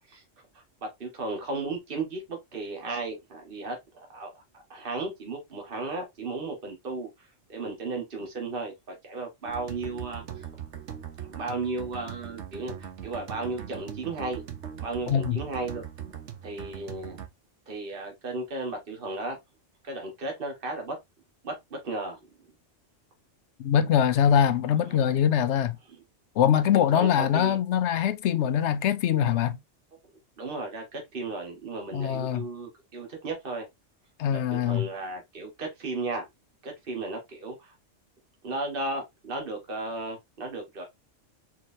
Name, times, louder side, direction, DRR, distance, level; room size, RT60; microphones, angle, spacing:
voice 1, 0.5-10.5 11.2-14.4 14.8-15.8 16.4-17.2 17.7-19.4 19.8-21.0 21.4-22.3 24.9-25.2 25.9-26.0 26.7-27.6 30.4-33.6 34.3-36.2 36.6-37.7 38.4-40.8, right 3 dB, 50° right, 1.7 m, -35 dB
sound 1, 9.5-17.3, right 9 dB, 70° right, 1.1 m, -40 dB
voice 2, 15.1-15.4 23.6-25.8 26.4-29.6 31.9-32.4 34.2-34.8, left 9 dB, 70° left, 0.8 m, -23 dB
4.7 x 3.9 x 2.7 m
omnidirectional pair, 1.3 m